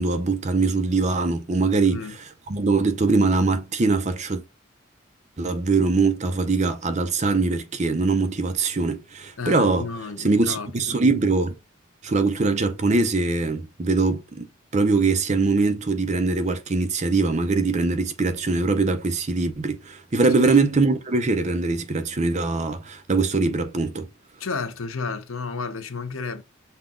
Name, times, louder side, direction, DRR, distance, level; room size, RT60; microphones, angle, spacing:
voice 1, 0.0-2.0 2.5-4.4 5.4-9.9 10.2-11.5 12.0-14.5 14.7-24.1, right 3 dB, 35° right, 0.6 m, -22 dB
voice 2, 1.8-2.2 9.4-11.0 20.3-20.6 24.4-26.4, left 4 dB, 80° left, 0.7 m, -32 dB
5.6 x 2.3 x 3.6 m
head